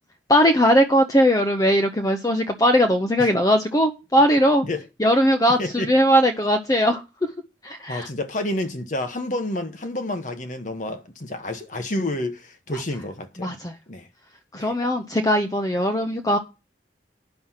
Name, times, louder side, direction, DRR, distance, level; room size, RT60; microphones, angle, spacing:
voice 1, 0.3-4.6 5.0-7.0 7.6-8.1 13.4-13.7 14.5-16.4, equal, 20° left, 0.7 m, -19 dB
voice 2, 5.6-5.9 7.9-13.5 13.9-14.1 14.5-14.8, left 1 dB, 45° left, 1.2 m, -29 dB
9.6 x 6.2 x 5.6 m
head